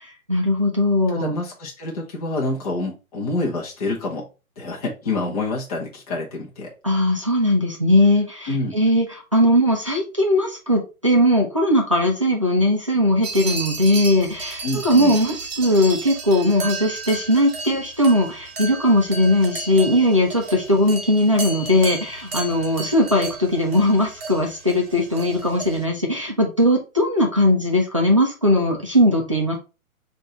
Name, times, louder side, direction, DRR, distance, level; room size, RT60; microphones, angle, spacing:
voice 1, 0.3-1.3 6.8-9.1 9.3-29.6, left 1 dB, 25° right, -1 dB, 0.4 m, -19 dB
voice 2, 1.1-4.2 4.6-6.7 8.5-8.7 14.6-15.2, left 2 dB, 25° left, -2 dB, 1.0 m, -27 dB
sound 1, 13.2-25.9, right 4 dB, 45° right, 1.0 m, -33 dB
4.6 x 2.6 x 4.2 m, 0.30 s
hypercardioid pair, 170°, 43 cm